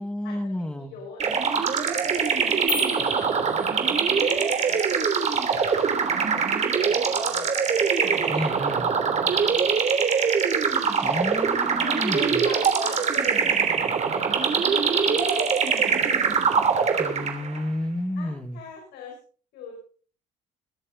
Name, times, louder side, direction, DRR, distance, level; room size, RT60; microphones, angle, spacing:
voice 1, 0.0-0.9 8.3-8.9 11.0-12.5 17.0-18.6, left 1 dB, 5° left, 8 dB, 1.9 m, -31 dB
voice 2, 0.7-1.6 2.0-2.3 3.0-4.2 4.6-8.3 8.7-8.9 9.3-9.6 10.0-10.1 11.8-15.5 15.8-17.6 18.2-19.2 19.5-19.8, left 5 dB, 80° left, 0 dB, 5.5 m, -44 dB
sound 1, 1.2-17.6, right 6 dB, 40° right, 3.2 m, -23 dB
sound 2, 2.7-4.2, left 4 dB, 35° left, 6.5 m, -34 dB
22.0 x 11.0 x 4.0 m, 0.43 s
cardioid pair, 110°, 17 cm